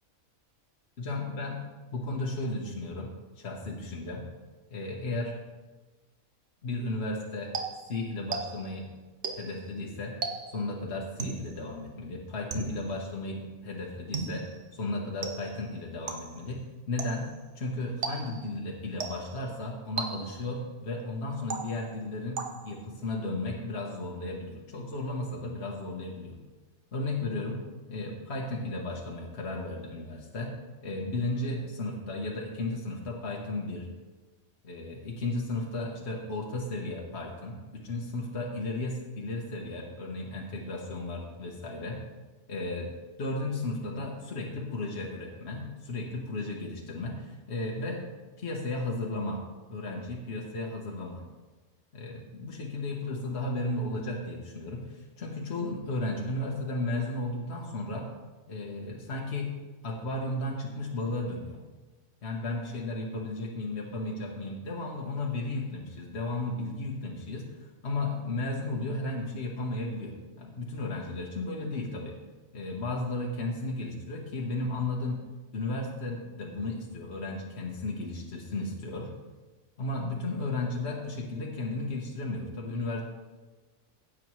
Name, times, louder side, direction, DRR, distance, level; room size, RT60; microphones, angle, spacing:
voice 1, 1.0-1.6 1.9-4.3 4.7-5.3 6.6-7.5 7.9-8.9 9.4-10.1 10.5-14.5 14.7-17.3 17.5-26.4 26.9-27.6 27.9-30.5 30.8-33.9 34.6-42.0 42.5-42.9 43.2-48.0 48.4-49.4 49.7-51.2 51.9-58.1 58.5-59.5 59.8-61.6 62.2-72.1 72.5-75.2 75.5-79.1 79.8-83.0, left 2 dB, 50° left, -2 dB, 1.4 m, -34 dB
sound 1, 7.5-8.8 9.2-9.7 10.2-10.7 11.2-11.6 12.5-13.0 14.1-14.6 15.2-15.7 16.1-16.5 17.0-17.4 18.0-18.5 19.0-19.4 20.0-20.5 21.5-22.0 22.4-22.9, right 4 dB, 60° right, 1.2 m, -36 dB
16.0 x 7.7 x 3.1 m, 1.2 s
omnidirectional pair, 1.4 m